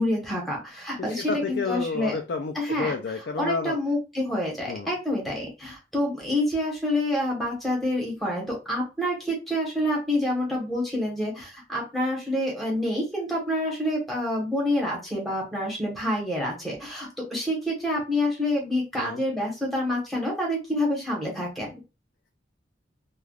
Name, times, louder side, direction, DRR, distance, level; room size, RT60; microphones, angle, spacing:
voice 1, 0.0-2.1 2.5-2.9 3.4-21.7, left 1 dB, ahead, -2 dB, 1.1 m, -27 dB
voice 2, 1.1-3.8 4.7-4.9 19.0-19.2, left 4 dB, 60° left, 4 dB, 0.4 m, -30 dB
3.3 x 2.3 x 2.3 m, 0.28 s
head